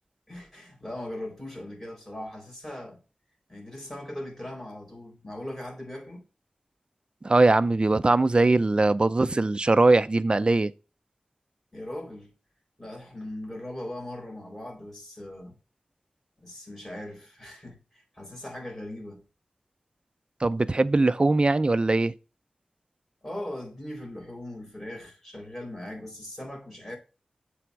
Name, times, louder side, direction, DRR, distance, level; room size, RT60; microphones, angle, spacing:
voice 1, 0.3-3.0 3.5-6.2 11.7-12.3 12.8-15.6 16.4-19.2 23.2-27.0, left 1 dB, 15° left, 4.0 m, -39 dB
voice 2, 7.2-10.7 20.4-22.1, right 2 dB, 40° right, 0.4 m, -21 dB
7.8 x 3.5 x 5.1 m
cardioid pair, 50°, 3 cm